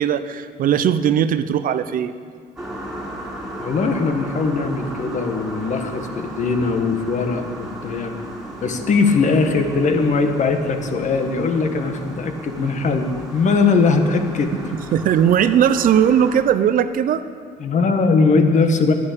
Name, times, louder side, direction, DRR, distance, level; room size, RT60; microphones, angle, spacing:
voice 1, 0.0-2.1 14.7-17.2, right 9 dB, 55° right, 13 dB, 0.6 m, -18 dB
sound 1, 2.6-16.4, right 1 dB, 5° right, 2.7 m, -35 dB
voice 2, 3.6-8.2 8.6-14.6 17.6-18.9, left 4 dB, 45° left, 6 dB, 1.4 m, -20 dB
11.0 x 9.8 x 8.5 m, 2.1 s
cardioid pair, 110°, 17 cm